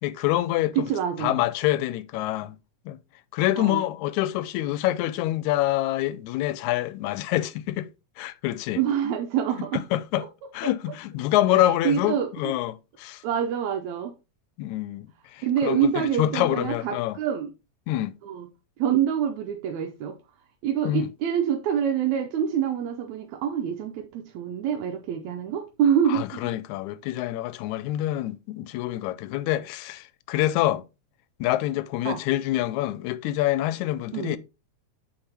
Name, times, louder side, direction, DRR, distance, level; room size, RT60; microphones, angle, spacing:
voice 1, 0.0-0.9 1.2-2.6 2.9-3.0 3.3-7.9 8.2-8.8 9.9-10.2 10.5-13.2 14.6-17.2 17.9-18.1 20.8-21.1 26.1-30.9 31.4-34.4, left 14 dB, 85° left, 2.0 m, -26 dB
voice 2, 0.8-1.4 3.6-3.8 8.8-9.8 10.2-10.3 10.6-10.7 11.5-12.5 13.2-14.2 15.4-17.5 18.2-18.5 18.8-20.2 20.6-26.4 32.1-32.2 34.1-34.4, right 8 dB, 80° right, 2.0 m, -26 dB
8.0 x 3.8 x 4.2 m
omnidirectional pair, 3.3 m